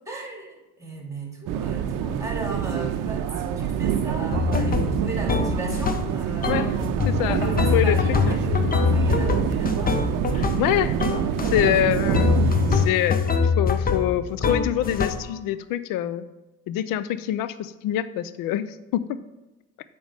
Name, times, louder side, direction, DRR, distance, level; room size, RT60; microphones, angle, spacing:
voice 1, 0.1-6.6 7.3-10.0 11.4-12.0, right 2 dB, 5° right, 0 dB, 2.4 m, -37 dB
sound 1, 1.5-12.9, right 8 dB, 50° right, 0.7 m, -26 dB
sound 2, 4.3-6.2 6.4-10.7 11.0-11.7 12.1-15.3, left 5 dB, 20° left, 0.8 m, -24 dB
voice 2, 7.1-7.4 7.7-8.0 8.3-8.4 10.3-11.0 11.5-12.3 12.7-13.3 13.6-16.2 16.7-19.2, left 12 dB, 50° left, 15 dB, 0.6 m, -25 dB
8.7 x 5.2 x 3.5 m, 1.1 s
hypercardioid pair, 70°, 43 cm